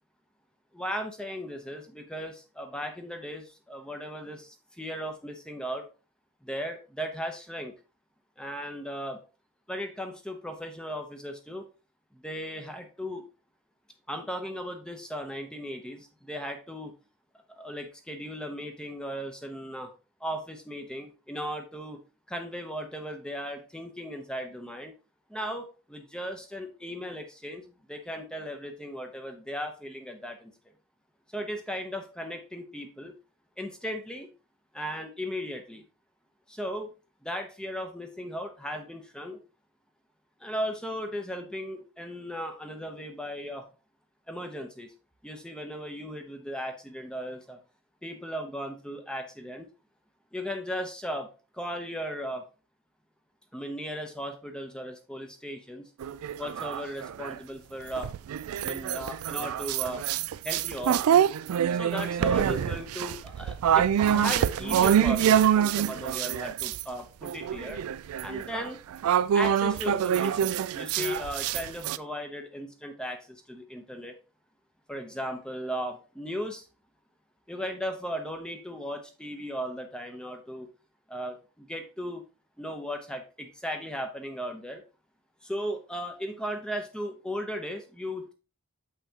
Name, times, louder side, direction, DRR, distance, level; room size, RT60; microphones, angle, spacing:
voice 1, 0.7-5.9 6.4-7.7 8.4-9.2 9.7-11.7 12.1-13.2 14.1-16.9 17.5-19.9 20.2-22.0 22.3-24.9 25.3-30.5 31.3-33.1 33.6-34.3 34.7-35.8 36.5-36.9 37.2-39.4 40.4-43.7 44.3-44.9 45.2-47.6 48.0-49.7 50.3-51.3 51.5-52.4 53.5-55.9 56.4-58.1 58.6-60.1 60.4-61.0 61.7-67.8 68.2-68.8 69.3-74.1 74.9-76.7 77.5-80.7 81.1-82.2 82.6-84.8 85.4-88.3, equal, 5° left, 5 dB, 0.7 m, -36 dB
sound 1, 56.0-57.4 57.9-66.8 67.2-72.0, right 9 dB, 90° right, 0.3 m, -26 dB
7.5 x 5.6 x 2.8 m, 0.33 s
head